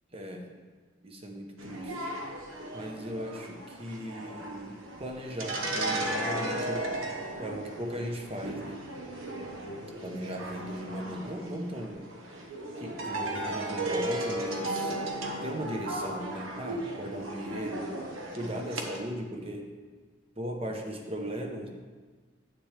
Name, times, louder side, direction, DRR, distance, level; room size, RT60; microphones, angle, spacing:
voice 1, 0.1-0.5 1.0-2.1 2.7-6.9 7.4-8.8 10.0-12.0 12.7-15.0 15.4-17.9 18.3-19.7 20.4-21.7, equal, 30° right, 2 dB, 0.9 m, -37 dB
sound 1, 1.6-19.0, right 1 dB, 90° right, 1.1 m, -35 dB
9.5 x 8.3 x 3.4 m, 1.4 s
head